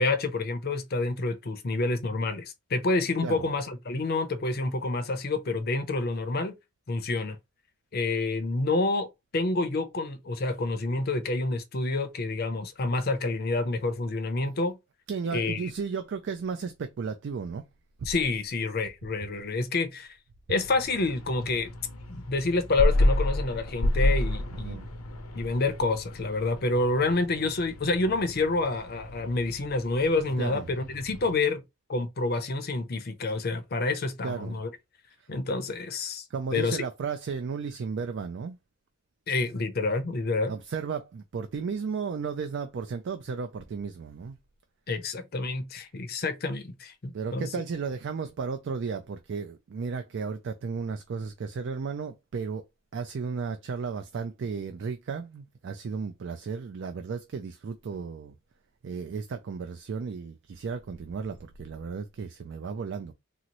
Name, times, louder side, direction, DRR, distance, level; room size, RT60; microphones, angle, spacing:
voice 1, 0.0-6.6 6.9-7.4 7.9-9.1 9.3-14.8 15.3-15.7 18.1-20.2 20.5-21.7 22.1-24.8 25.3-31.6 31.9-34.7 35.3-36.3 36.5-36.8 39.3-40.5 44.9-47.5, left 3 dB, 45° left, 0.6 m, -28 dB
voice 2, 15.1-17.6 18.0-18.1 24.5-24.9 30.4-30.7 34.2-34.6 35.2-35.3 36.3-38.6 40.4-44.4 47.1-52.6 52.9-58.3 58.8-63.1, right 5 dB, 55° right, 0.3 m, -34 dB
sound 1, 20.6-31.3, left 1 dB, 85° left, 0.6 m, -31 dB
3.8 x 2.0 x 2.8 m
head